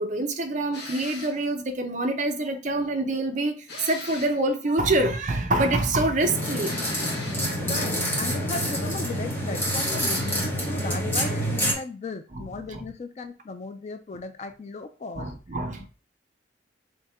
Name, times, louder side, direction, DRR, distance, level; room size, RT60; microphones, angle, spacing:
voice 1, 0.0-3.6 3.8-6.8 12.3-12.8 15.2-15.9, right 2 dB, 40° right, 0.6 m, -26 dB
sound 1, 0.7-1.4 3.7-4.5 6.6-7.5 9.7-10.5, left 2 dB, 55° left, 1.0 m, -40 dB
sound 2, 6.2-11.7, equal, 10° left, 1.0 m, -27 dB
voice 2, 7.6-15.3 15.8-15.9, left 3 dB, 35° left, 0.3 m, -36 dB
3.4 x 2.8 x 4.2 m
head